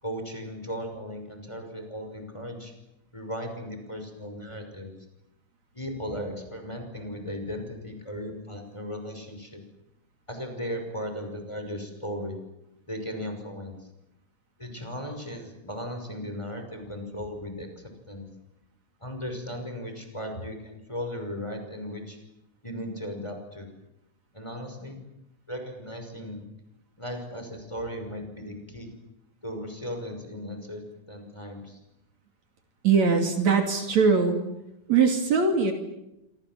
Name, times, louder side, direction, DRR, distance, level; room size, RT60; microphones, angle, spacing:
voice 1, 0.0-2.7 3.1-4.9 5.7-9.6 10.3-12.4 12.9-13.8 14.6-18.3 19.0-22.2 22.6-23.7 24.3-25.0 25.5-26.4 27.0-28.9 29.4-31.8, equal, 10° left, 5 dB, 5.7 m, -36 dB
voice 2, 32.8-34.4 34.9-35.7, right 5 dB, 60° right, 5 dB, 3.9 m, -21 dB
27.0 x 25.5 x 7.7 m, 0.90 s
omnidirectional pair, 3.6 m